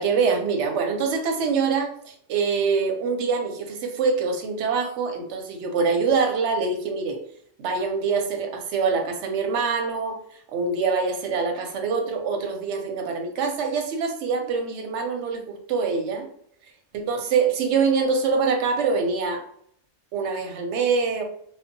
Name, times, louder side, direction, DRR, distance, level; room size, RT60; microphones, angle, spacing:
voice 1, 0.0-7.2 7.6-16.3 16.9-19.4 20.1-21.2, right 5 dB, 70° right, 4 dB, 0.8 m, -24 dB
2.6 x 2.3 x 2.6 m, 0.64 s
omnidirectional pair, 1.3 m